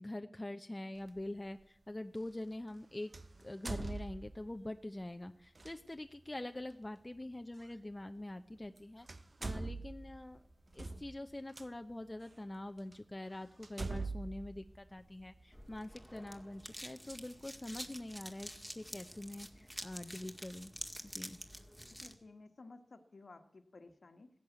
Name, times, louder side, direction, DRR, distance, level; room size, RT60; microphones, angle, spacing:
voice 1, 0.0-3.1 3.4-9.1 9.4-10.4 10.7-20.7 21.0-21.4, left 1 dB, 25° left, 7 dB, 0.8 m, -45 dB
sound 1, 1.0-1.2 3.1-4.6 5.5-5.7 7.6-7.7 8.6-8.8 9.1-11.7 12.3-12.4 12.9-13.0 13.6-15.4, right 3 dB, 50° right, 0.7 m, -43 dB
sound 2, 10.0-19.1, right 2 dB, 80° right, 6.3 m, -76 dB
sound 3, 15.5-22.1, equal, 5° right, 1.9 m, -48 dB
voice 2, 21.9-24.3, left 3 dB, 70° left, 8 dB, 1.5 m, -56 dB
16.0 x 10.5 x 8.1 m, 0.73 s
wide cardioid pair, 60°, 0 cm